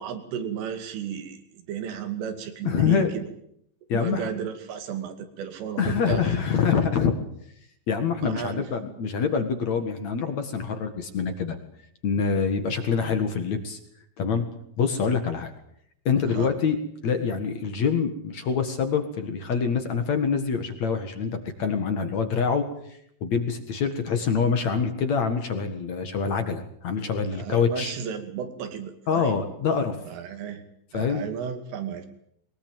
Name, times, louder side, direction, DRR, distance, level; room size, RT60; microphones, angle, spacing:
voice 1, 0.0-3.2 3.9-6.3 8.2-8.7 16.2-16.5 27.3-29.4 30.1-30.6 30.9-32.1, right 8 dB, 85° right, 8 dB, 5.0 m, -33 dB
voice 2, 2.6-3.1 3.9-4.3 5.8-7.1 7.9-11.6 12.0-13.8 14.2-14.5 14.8-15.5 16.1-27.9 29.1-30.0 30.9-31.2, left 6 dB, 55° left, 8 dB, 2.1 m, -25 dB
23.0 x 20.0 x 9.0 m, 0.71 s
omnidirectional pair, 5.5 m